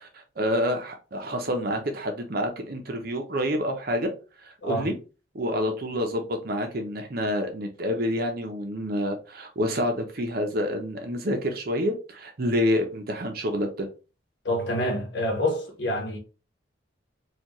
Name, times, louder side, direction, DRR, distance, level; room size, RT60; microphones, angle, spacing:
voice 1, 0.0-4.1 4.4-4.9 5.3-13.9, equal, 50° right, 0.7 m, -28 dB
voice 2, 14.4-16.2, left 1 dB, 60° left, 1.3 m, -27 dB
4.4 x 2.4 x 3.0 m
head